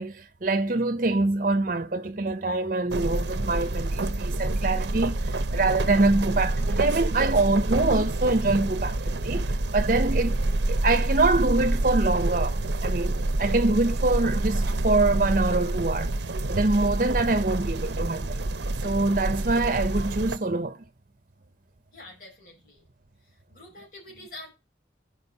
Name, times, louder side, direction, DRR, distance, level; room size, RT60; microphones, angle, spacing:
voice 1, 0.0-9.5 9.7-10.4 10.7-16.1 16.5-18.4 18.8-20.8, right 2 dB, 45° right, 0.8 m, -25 dB
sound 1, 2.9-20.4, right 2 dB, 75° right, 0.8 m, -27 dB
voice 2, 21.9-22.9 23.5-24.5, left 2 dB, 50° left, 5.0 m, -45 dB
12.5 x 5.3 x 5.4 m
head